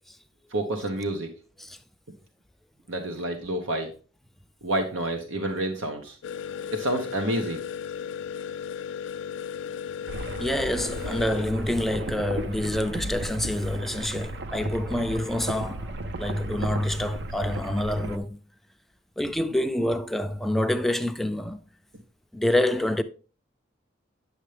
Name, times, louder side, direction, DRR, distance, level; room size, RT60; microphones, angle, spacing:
voice 1, 0.5-1.3 2.9-3.9 4.6-6.2 6.7-7.6, right 1 dB, 85° right, 1.0 m, -29 dB
sound 1, 6.2-11.4, left 8 dB, 70° left, 0.3 m, -35 dB
sound 2, 10.1-18.2, right 1 dB, 60° right, 0.6 m, -35 dB
voice 2, 10.4-18.4 19.2-21.6 22.3-23.0, left 1 dB, ahead, 0.4 m, -27 dB
9.0 x 6.7 x 3.3 m
head